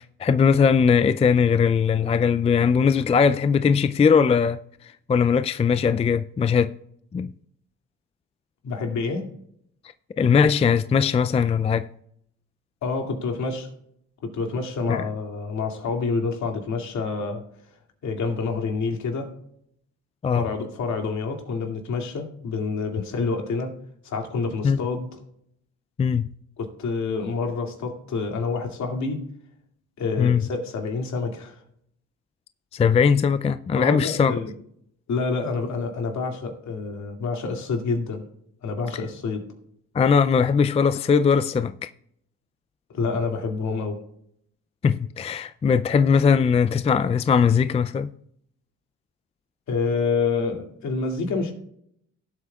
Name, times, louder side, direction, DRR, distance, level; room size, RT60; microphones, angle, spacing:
voice 1, 0.0-4.6 5.1-6.8 7.1-7.3 10.2-11.9 14.9-15.0 20.2-20.5 24.6-24.8 26.0-26.3 30.2-30.4 32.7-34.3 39.9-41.7 44.8-48.1, left 6 dB, 20° left, 0.3 m, -20 dB
voice 2, 8.6-9.3 12.8-13.7 14.2-17.4 18.0-19.3 20.3-23.8 24.0-25.2 26.6-29.3 30.0-31.6 33.8-34.5 35.1-38.2 38.6-39.4 42.9-44.0 49.7-51.5, left 4 dB, 65° left, 2.3 m, -27 dB
17.5 x 8.1 x 2.3 m
cardioid pair, 90°, 30 cm